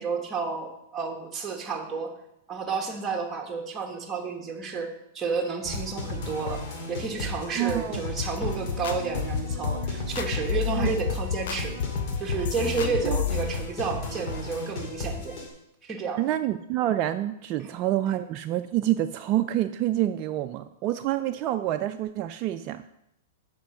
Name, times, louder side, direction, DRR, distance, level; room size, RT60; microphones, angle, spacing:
voice 1, 0.0-2.1 2.5-4.9 5.1-6.6 6.9-11.8 12.2-15.3 15.8-16.3 17.6-17.7, right 5 dB, 20° right, 2 dB, 1.3 m, -31 dB
sound 1, 5.6-15.5, left 2 dB, 50° left, 2.4 m, -34 dB
voice 2, 7.5-8.0 10.8-10.9 13.0-13.2 16.2-22.8, right 13 dB, 40° right, 7 dB, 0.3 m, -27 dB
sound 2, 8.2-13.4, left 8 dB, 70° left, 0.5 m, -30 dB
7.3 x 5.2 x 5.8 m, 0.82 s
hypercardioid pair, 115°, 0 cm